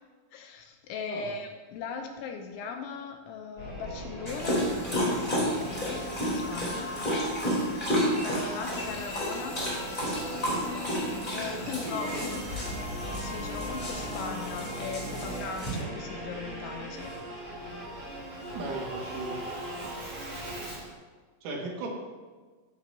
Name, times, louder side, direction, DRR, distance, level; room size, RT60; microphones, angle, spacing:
voice 1, 0.3-6.0 6.3-6.9 7.7-7.8 8.2-9.6 11.3-12.5 13.1-17.1, left 5 dB, 80° left, 4 dB, 3.0 m, -39 dB
Singing / Musical instrument, 3.6-20.9, right 1 dB, 30° right, 3.8 m, -40 dB
Dog, 4.3-15.8, equal, 10° left, 2.8 m, -32 dB
sound 1, 4.5-15.4, left 2 dB, 25° left, 3.8 m, -41 dB
voice 2, 11.5-12.3 18.5-19.4 21.4-21.9, right 2 dB, 75° right, -2 dB, 4.5 m, -37 dB
14.0 x 11.5 x 2.9 m, 1.4 s
omnidirectional pair, 5.7 m